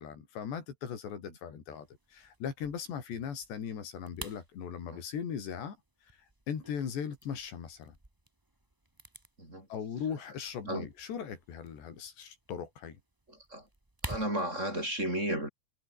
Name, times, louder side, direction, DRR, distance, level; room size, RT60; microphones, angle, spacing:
voice 1, 0.0-5.8 6.5-8.0 9.7-13.0, left 7 dB, 90° left, 6.1 m, -39 dB
sound 1, 1.7-14.3, right 1 dB, 30° right, 0.3 m, -51 dB
voice 2, 13.3-13.7 14.0-15.5, right 1 dB, 15° right, 7.5 m, -34 dB
omnidirectional pair, 4.8 m